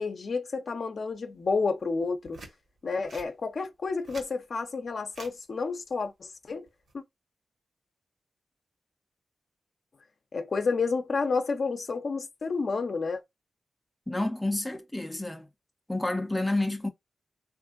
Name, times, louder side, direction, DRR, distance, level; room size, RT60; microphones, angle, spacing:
voice 1, 0.0-2.4 2.8-6.7 6.9-7.0 10.3-13.2, left 4 dB, 50° left, 0.6 m, -30 dB
sound 1, 2.3-2.6 3.1-3.3 3.9-4.3 5.1-5.4 6.7-6.9, right 2 dB, 60° right, 1.3 m, -46 dB
voice 2, 14.1-15.5 15.9-16.9, left 2 dB, 5° left, 0.5 m, -29 dB
3.6 x 2.5 x 2.5 m
wide cardioid pair, 130°, 0 cm